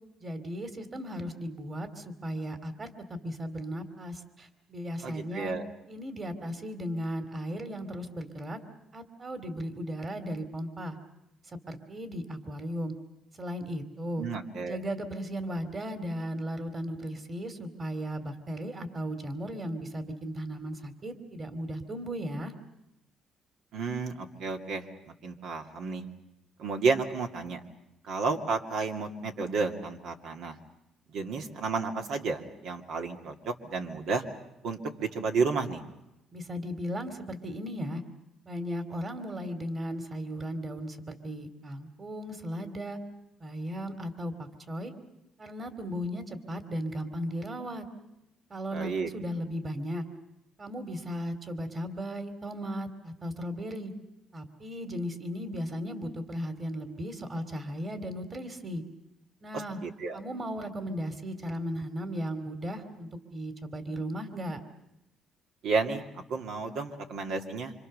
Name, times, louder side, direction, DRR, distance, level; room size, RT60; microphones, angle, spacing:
voice 1, 0.2-5.6 5.9-8.6 8.9-11.0 11.5-12.9 13.4-14.2 14.7-22.5 36.3-38.0 38.5-43.0 43.4-44.9 45.4-47.8 48.5-50.0 50.6-53.9 54.3-58.8 59.4-59.8 60.1-64.6, equal, 30° right, 9 dB, 2.9 m, -36 dB
voice 2, 5.0-5.7 14.2-14.8 23.7-26.0 26.6-27.6 28.0-30.6 31.1-34.2 34.6-35.8 48.7-49.1 59.5-60.2 65.6-67.7, right 4 dB, 75° right, 3 dB, 2.4 m, -32 dB
27.0 x 26.0 x 6.7 m, 0.89 s
cardioid pair, 95°, 0 cm